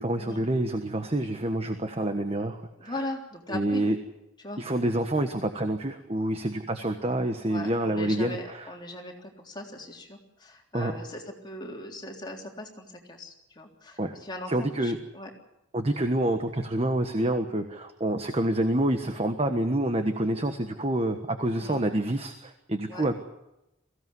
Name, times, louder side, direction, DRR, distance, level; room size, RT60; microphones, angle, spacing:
voice 1, 0.0-3.0 3.5-4.0 4.6-8.7 10.7-11.0 14.0-14.2 14.5-15.0 15.7-23.2, right 1 dB, 30° right, 7 dB, 1.4 m, -27 dB
voice 2, 2.8-3.8 4.4-4.6 6.4-6.5 7.5-15.3 21.6-21.8 22.9-23.1, left 1 dB, 20° left, 1 dB, 3.6 m, -39 dB
22.5 x 16.5 x 9.6 m, 0.91 s
head